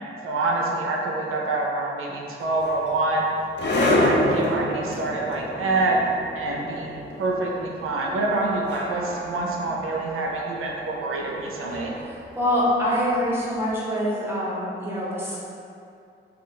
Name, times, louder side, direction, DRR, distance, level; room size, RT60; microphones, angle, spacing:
voice 1, 0.2-3.3 3.6-6.0 6.3-11.9, right 2 dB, 85° right, -1 dB, 0.5 m, -26 dB
sound 1, 2.4-13.5, left 1 dB, 55° left, 0.6 m, -29 dB
voice 2, 12.0-15.4, equal, 10° right, -8 dB, 1.1 m, -25 dB
2.4 x 2.3 x 3.6 m, 2.5 s
cardioid pair, 60°, 21 cm